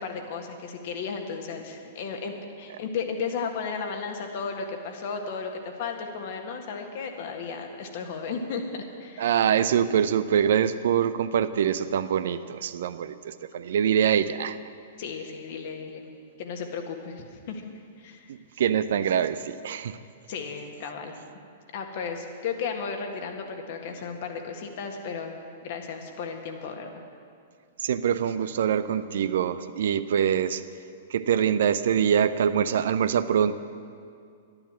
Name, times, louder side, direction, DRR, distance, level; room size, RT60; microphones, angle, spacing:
voice 1, 0.0-9.4 15.0-16.1 16.4-17.6 18.0-18.3 20.3-21.2 21.7-25.4 25.6-26.9, left 5 dB, 50° left, 4 dB, 1.7 m, -34 dB
voice 2, 9.2-14.6 18.3-20.0 27.8-30.6 31.1-33.6, right 8 dB, 60° right, 13 dB, 0.5 m, -24 dB
12.0 x 11.0 x 7.5 m, 2.3 s
figure-of-eight pair, 105°, 0 cm